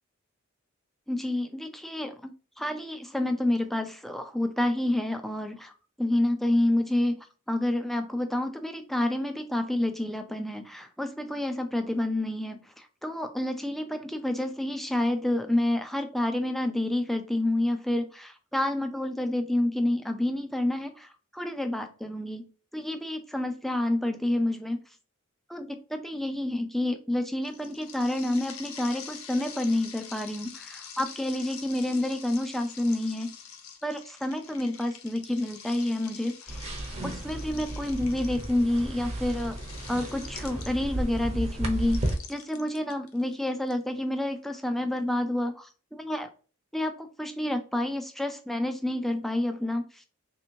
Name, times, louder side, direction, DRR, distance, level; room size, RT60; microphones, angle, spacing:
voice 1, 1.1-2.3 2.6-5.7 6.0-22.4 22.7-24.8 25.5-33.3 33.8-36.6 37.0-39.6 39.9-46.3 46.7-50.0, left 1 dB, ahead, 7 dB, 0.3 m, -29 dB
sound 1, 27.4-41.1 41.8-43.7, left 7 dB, 85° left, 0.6 m, -46 dB
sound 2, 36.5-42.2, right 1 dB, 30° right, 0.7 m, -33 dB
3.3 x 2.9 x 2.6 m, 0.37 s
head